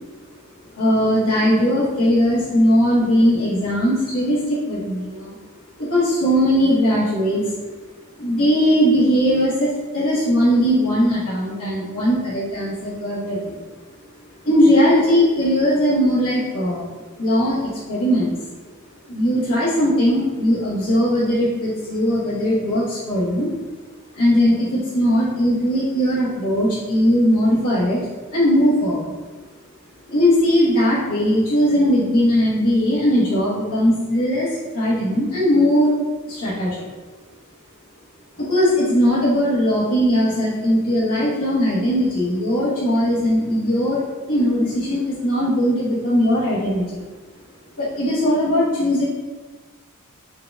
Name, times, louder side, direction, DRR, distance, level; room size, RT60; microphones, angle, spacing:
voice 1, 0.7-5.4 5.8-7.5 8.2-13.6 14.4-16.9 17.2-18.4 19.1-23.5 24.1-28.0 28.3-29.2 30.1-35.9 36.3-36.8 38.3-47.0 47.8-49.0, equal, 75° left, -10 dB, 1.1 m, -19 dB
4.8 x 2.3 x 3.4 m, 1.3 s
head